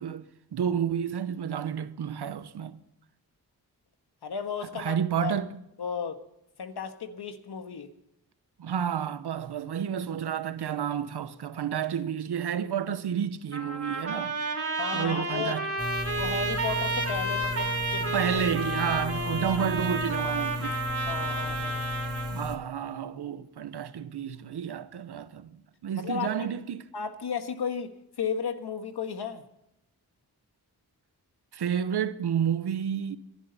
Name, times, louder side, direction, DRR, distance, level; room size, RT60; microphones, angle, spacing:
voice 1, 0.0-2.8 4.7-5.5 8.6-14.4 14.9-15.7 18.0-20.8 22.3-26.9 31.5-33.2, right 8 dB, 90° right, 0.9 m, -30 dB
voice 2, 4.2-5.3 5.8-6.2 6.6-7.9 14.8-15.6 16.2-18.3 21.1-21.9 25.9-26.5 26.9-27.9 28.2-29.4, left 6 dB, 80° left, 1.6 m, -34 dB
Trumpet, 13.5-22.4, right 2 dB, 35° right, 3.3 m, -31 dB
sound 1, 15.8-22.6, left 1 dB, 10° right, 2.4 m, -35 dB
25.0 x 11.5 x 4.1 m
cardioid pair, 70°, 39 cm